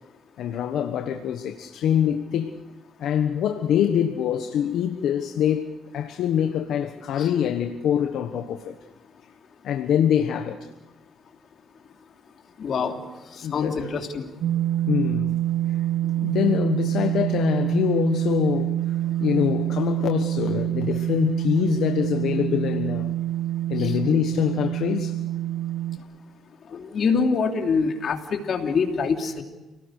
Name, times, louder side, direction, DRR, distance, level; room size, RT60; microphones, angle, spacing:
voice 1, 0.4-2.5 3.0-8.8 9.6-10.7 13.4-13.9 14.9-15.4 15.7-15.8 16.2-18.8 19.2-23.1 23.7-25.2, left 9 dB, 80° left, 1.3 m, -24 dB
voice 2, 12.6-13.0 13.4-14.3 23.8-24.0 26.7-29.4, left 5 dB, 55° left, 3.1 m, -25 dB
sound 1, 14.4-26.0, right 13 dB, 80° right, 1.4 m, -26 dB
29.5 x 18.5 x 6.6 m
cardioid pair, 90°, 0 cm